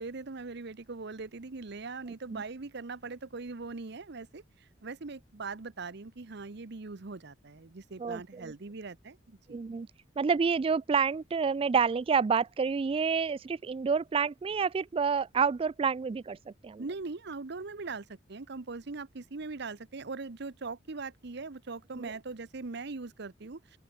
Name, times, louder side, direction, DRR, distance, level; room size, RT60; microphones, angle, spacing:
voice 1, 0.0-9.6 16.8-23.8, right 3 dB, 60° right, 0.9 m, -41 dB
voice 2, 8.0-8.5 9.5-9.9 10.2-16.4 16.6-16.8 22.0-22.1, right 5 dB, 30° right, 0.3 m, -28 dB
open air
head